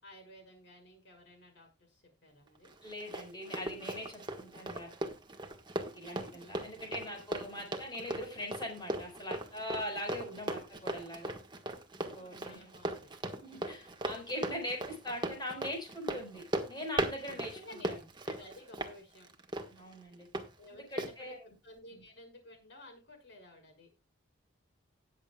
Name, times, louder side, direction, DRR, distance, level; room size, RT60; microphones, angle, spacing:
voice 1, 0.0-2.8 6.1-6.7 12.0-13.1 17.3-17.9 18.2-19.3 20.6-23.9, left 1 dB, 55° left, 3 dB, 6.0 m, -54 dB
Run, 2.6-20.5 21.0-21.1, right 1 dB, 20° right, 1.5 m, -38 dB
voice 2, 2.8-4.9 5.9-11.4 12.0-12.7 13.4-17.9 19.7-20.3 20.7-21.4 21.9-22.0, left 1 dB, 20° left, 2 dB, 4.8 m, -42 dB
19.5 x 7.6 x 2.4 m, 0.25 s
head